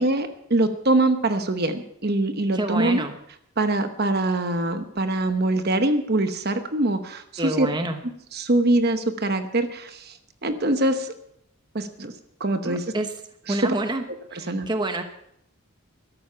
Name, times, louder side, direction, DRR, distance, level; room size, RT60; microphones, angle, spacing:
voice 1, 0.0-3.0 3.6-7.7 8.3-10.1 10.4-11.1 11.7-12.1 12.4-12.8 13.5-13.7 14.3-14.7, right 2 dB, 45° right, 8 dB, 1.0 m, -23 dB
voice 2, 2.5-3.2 7.4-8.0 12.6-13.1 13.5-14.0 14.3-15.0, right 1 dB, 20° right, 6 dB, 1.0 m, -27 dB
13.5 x 12.0 x 5.7 m, 0.74 s
head